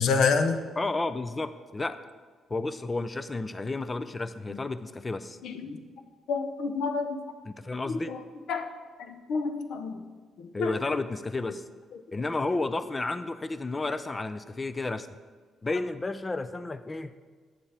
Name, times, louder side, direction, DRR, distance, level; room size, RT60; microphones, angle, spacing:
voice 1, 0.0-0.6 4.5-4.6 5.4-5.8 6.3-7.2 7.9-8.2 8.5-8.7 9.0-10.0 10.4-10.7 11.9-12.0, left 5 dB, 75° left, 7 dB, 0.7 m, -28 dB
voice 2, 0.8-2.0 2.5-5.4 7.5-8.1 10.5-11.6 12.1-15.1 15.6-17.1, left 3 dB, 25° left, 12 dB, 0.4 m, -32 dB
9.1 x 7.1 x 3.4 m, 1.5 s
cardioid pair, 90°, 0 cm